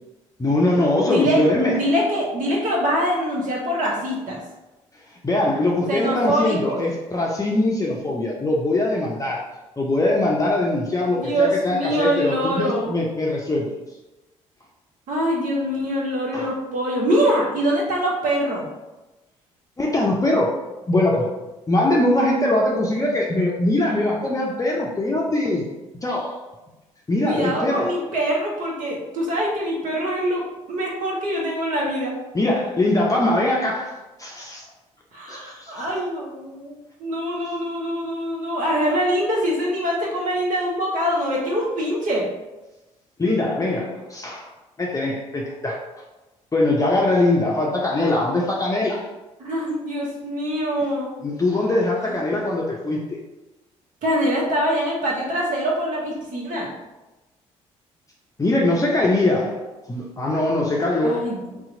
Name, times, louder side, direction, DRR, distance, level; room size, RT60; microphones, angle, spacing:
voice 1, 0.4-1.8 5.2-9.4 9.8-13.7 16.3-16.5 19.8-20.5 20.9-21.3 21.7-25.7 26.0-26.3 27.1-27.9 32.3-33.9 34.2-34.7 35.3-35.8 43.2-44.5 44.8-45.8 46.5-49.0 51.2-53.2 58.4-59.6 59.9-61.2, left 2 dB, 20° left, -3 dB, 0.6 m, -22 dB
voice 2, 1.1-4.4 5.9-6.8 11.1-13.0 15.1-18.7 27.2-30.4 30.7-32.1 35.1-42.3 49.4-51.1 52.0-52.4 54.0-56.7 61.0-61.6, equal, 55° right, -3 dB, 1.1 m, -24 dB
2.8 x 2.4 x 3.8 m, 1.1 s
hypercardioid pair, 50°, 16 cm